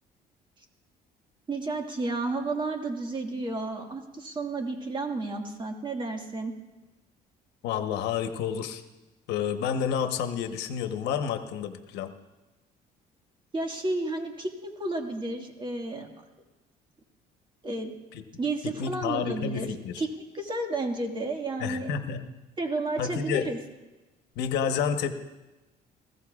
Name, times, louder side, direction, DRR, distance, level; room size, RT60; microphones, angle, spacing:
voice 1, 1.5-6.5 13.5-16.1 17.6-17.9 18.4-19.7 20.0-20.1 20.3-21.9 22.6-23.6, right 2 dB, 30° right, 3 dB, 1.8 m, -31 dB
voice 2, 7.6-8.8 9.3-12.1 18.1-18.2 18.6-20.0 21.6-22.3 23.0-23.5 24.4-25.1, left 7 dB, 85° left, 8 dB, 1.0 m, -30 dB
20.5 x 15.5 x 2.4 m, 1.1 s
cardioid pair, 110°, 17 cm